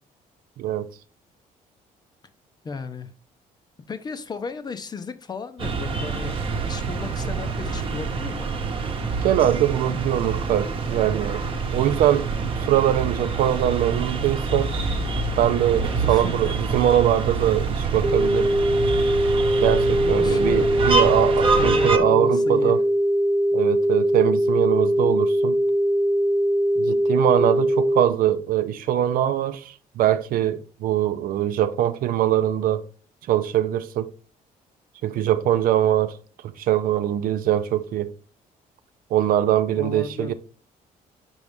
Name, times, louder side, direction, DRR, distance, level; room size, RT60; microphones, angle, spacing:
voice 1, 2.6-3.1 3.9-8.5 16.0-16.5 19.8-21.2 21.6-22.7 39.7-40.3, left 4 dB, 30° left, 0.6 m, -35 dB
sound 1, 5.6-22.0, right 4 dB, 35° right, 1.0 m, -26 dB
voice 2, 9.2-11.4 11.7-14.7 15.4-18.5 19.6-22.8 23.5-25.6 26.8-32.8 33.3-34.1 35.0-36.2 36.6-38.1 39.1-40.3, right 11 dB, 75° right, 0.6 m, -22 dB
sound 2, 18.0-28.0, equal, 15° right, 0.4 m, -21 dB
6.1 x 5.3 x 3.5 m
cardioid pair, 145°, 15 cm